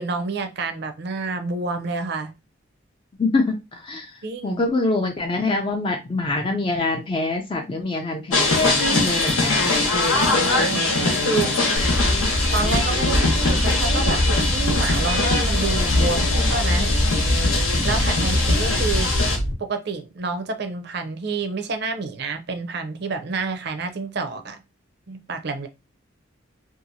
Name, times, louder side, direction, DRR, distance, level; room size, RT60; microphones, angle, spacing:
voice 1, 0.0-2.3 4.2-4.6 10.1-11.8 12.5-16.9 17.8-19.1 19.6-24.6 25.1-25.7, right 4 dB, 50° right, 0.5 m, -29 dB
voice 2, 3.2-9.7 18.2-18.4, left 2 dB, 25° left, 0.3 m, -25 dB
sound 1, 8.3-19.4, left 3 dB, 85° left, 1.0 m, -22 dB
sound 2, 11.8-19.5, left 1 dB, 70° left, 0.7 m, -23 dB
2.7 x 2.4 x 2.6 m
head